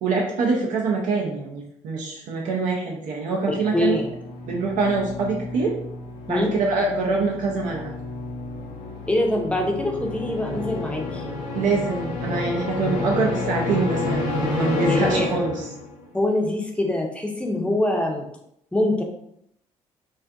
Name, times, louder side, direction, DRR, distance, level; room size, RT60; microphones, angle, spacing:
voice 1, 0.0-4.0 4.5-5.7 6.3-7.9 11.5-15.5, right 4 dB, 50° right, -2 dB, 0.5 m, -24 dB
sound 1, 3.4-16.0, left 3 dB, 65° left, 0.5 m, -30 dB
voice 2, 3.5-4.1 6.3-6.5 9.0-11.2 14.8-15.3 16.1-18.3 18.7-19.0, left 1 dB, 5° left, 1 dB, 0.6 m, -24 dB
2.5 x 2.3 x 2.4 m, 0.73 s
figure-of-eight pair, 45°, 16 cm